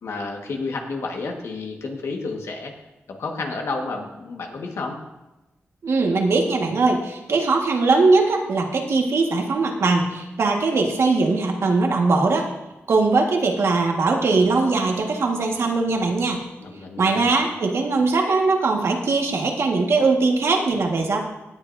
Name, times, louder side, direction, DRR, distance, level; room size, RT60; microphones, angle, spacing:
voice 1, 0.0-2.7 3.2-5.0 16.6-17.3, left 3 dB, 80° left, 2 dB, 1.7 m, -30 dB
voice 2, 5.8-12.5 12.9-16.4 17.0-21.2, right 3 dB, 70° right, 1 dB, 1.8 m, -20 dB
17.0 x 9.7 x 2.8 m, 1.0 s
wide cardioid pair, 95°, 5 cm